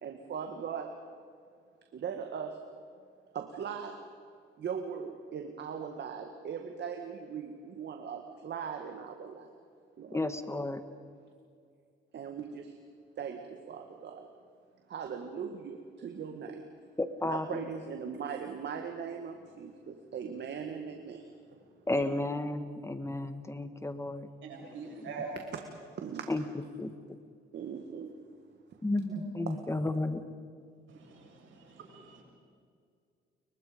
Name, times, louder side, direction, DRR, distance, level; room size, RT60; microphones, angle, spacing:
voice 1, 0.0-1.0 1.9-2.6 3.3-4.0 4.6-9.5 10.0-10.2 12.1-12.8 13.2-14.3 14.9-16.7 17.2-21.3 25.4-25.7 26.0-26.4 27.5-28.1 29.8-29.9, right 7 dB, 60° right, 5 dB, 1.9 m, -39 dB
voice 2, 10.1-10.8 17.0-17.6 21.9-24.3 26.3-26.4 26.8-26.9 28.8-30.2, left 2 dB, 15° left, 10 dB, 1.4 m, -32 dB
voice 3, 24.5-25.4 29.1-29.2 30.9-32.2, right 5 dB, 75° right, -1 dB, 7.6 m, -43 dB
29.5 x 23.5 x 5.2 m, 2.2 s
cardioid pair, 90°, 20 cm